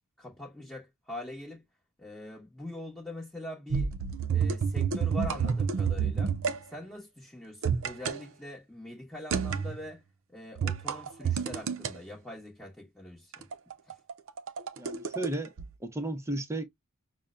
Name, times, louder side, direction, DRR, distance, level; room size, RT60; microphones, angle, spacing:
voice 1, 0.2-1.6 2.0-3.9 4.3-6.3 6.7-10.0 10.3-13.5 13.9-14.0, left 1 dB, 5° left, 1.0 m, -43 dB
sound 1, 3.7-6.6 7.6-8.2 9.3-9.8 10.6-11.9 13.3-15.3 15.6-15.7, right 6 dB, 65° right, 0.5 m, -29 dB
voice 2, 14.8-15.5 15.8-16.6, right 1 dB, 15° right, 0.7 m, -33 dB
5.6 x 2.1 x 2.4 m
head